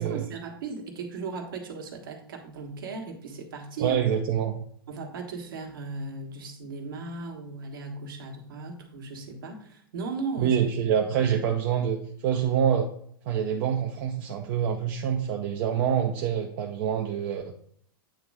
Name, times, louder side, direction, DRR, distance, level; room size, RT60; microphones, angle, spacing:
voice 1, 0.0-4.0 4.9-10.6, right 4 dB, 70° right, 2 dB, 1.5 m, -37 dB
voice 2, 3.8-4.6 10.4-12.9 13.2-17.4, right 8 dB, 50° right, 1 dB, 0.8 m, -26 dB
8.8 x 3.1 x 4.8 m, 0.63 s
hypercardioid pair, 100°, 12 cm